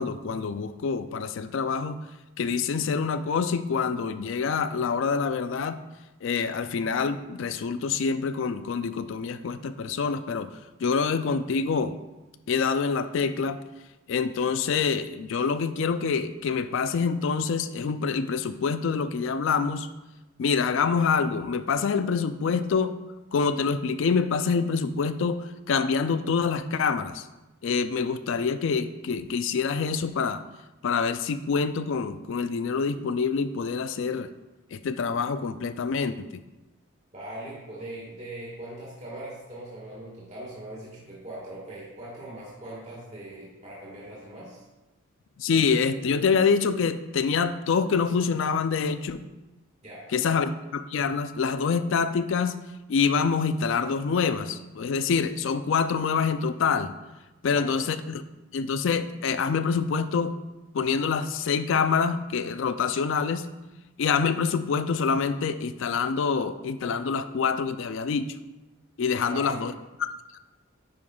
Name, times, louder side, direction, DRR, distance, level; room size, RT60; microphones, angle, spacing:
voice 1, 0.0-2.0 2.4-5.8 6.2-12.0 12.5-13.6 14.1-19.9 20.4-23.0 23.3-27.2 27.6-30.4 30.8-34.3 34.7-36.3 45.4-49.2 50.1-52.6 52.9-56.9 57.4-58.2 58.5-60.4 60.7-63.5 64.0-68.3 69.0-69.7 70.0-70.1, left 5 dB, 60° left, 12 dB, 0.3 m, -26 dB
voice 2, 37.1-44.6 49.8-50.1 57.4-57.8 69.2-69.7, right 1 dB, 30° right, -6 dB, 1.6 m, -41 dB
9.6 x 5.4 x 2.3 m, 1.0 s
head